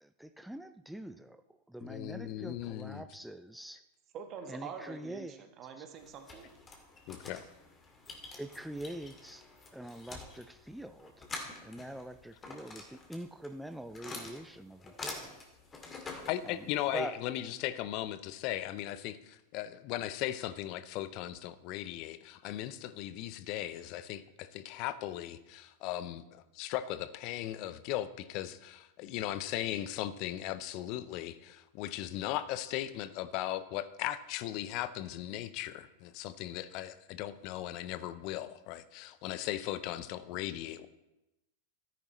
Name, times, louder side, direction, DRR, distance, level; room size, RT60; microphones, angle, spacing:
voice 1, 0.0-1.4 1.7-3.8 4.5-5.5 5.8-5.9 8.4-9.5 9.7-11.3 11.6-15.4 16.4-16.7 16.9-17.2, right 1 dB, ahead, 9 dB, 0.4 m, -44 dB
voice 2, 1.8-3.0 7.1-7.4 16.3-40.9, left 13 dB, 50° left, 14 dB, 0.6 m, -38 dB
voice 3, 4.1-6.5, right 7 dB, 40° right, 5 dB, 1.4 m, -45 dB
sound 1, 6.0-17.0, left 3 dB, 20° left, 2.1 m, -47 dB
13.5 x 10.0 x 3.1 m, 0.96 s
hypercardioid pair, 95°, 0 cm